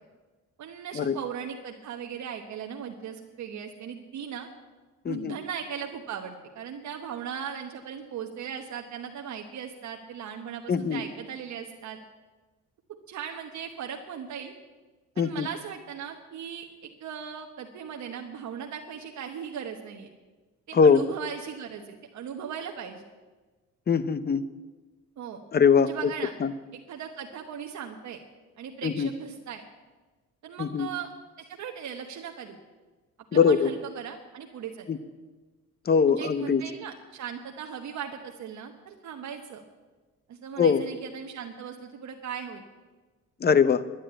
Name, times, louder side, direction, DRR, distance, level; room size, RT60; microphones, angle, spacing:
voice 1, 0.6-4.5 5.0-12.0 12.9-14.5 15.1-20.1 20.7-23.0 25.2-25.4 25.8-26.3 26.9-28.2 28.6-29.6 30.4-31.1 31.4-32.6 33.3-34.9 36.1-39.6 40.3-42.6, right 7 dB, 70° right, 3 dB, 1.1 m, -38 dB
voice 2, 5.0-5.4 10.7-11.0 15.2-15.5 20.7-21.0 23.9-24.4 25.5-26.1 26.4-26.5 28.8-29.1 30.6-30.9 33.3-33.7 34.9-35.0 35.8-36.6 40.6-40.8 43.4-43.8, left 6 dB, 30° left, 15 dB, 0.8 m, -22 dB
11.0 x 10.0 x 8.7 m, 1.3 s
cardioid pair, 90°, 30 cm